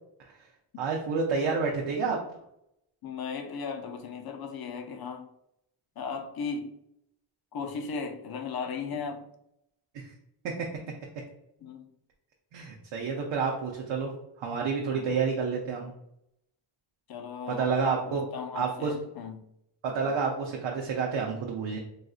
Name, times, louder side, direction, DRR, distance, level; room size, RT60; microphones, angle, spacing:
voice 1, 0.8-2.2 9.9-10.1 10.4-10.5 12.5-14.1 14.4-15.9 17.5-18.2 18.5-18.9 19.8-21.8, right 5 dB, 65° right, 0.7 m, -29 dB
voice 2, 3.0-5.3 6.0-6.7 7.5-9.2 11.6-11.9 14.8-15.2 17.1-19.5, left 5 dB, 50° left, 0.5 m, -37 dB
4.0 x 2.5 x 2.4 m
cardioid pair, 80°, 49 cm